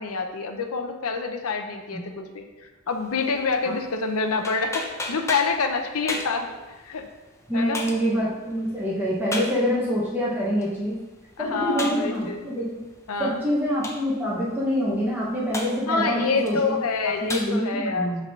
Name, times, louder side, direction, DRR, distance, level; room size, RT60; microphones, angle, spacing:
voice 1, 0.0-7.1 7.5-7.8 11.4-12.5 13.1-13.4 15.9-18.3, left 4 dB, 70° left, 4 dB, 0.7 m, -27 dB
sound 1, 2.9-17.5, left 2 dB, 15° left, 0.7 m, -38 dB
voice 2, 7.5-11.0 11.4-12.7 13.2-16.8 17.2-18.3, equal, 10° right, -7 dB, 1.0 m, -25 dB
5.7 x 3.5 x 5.9 m, 1.1 s
head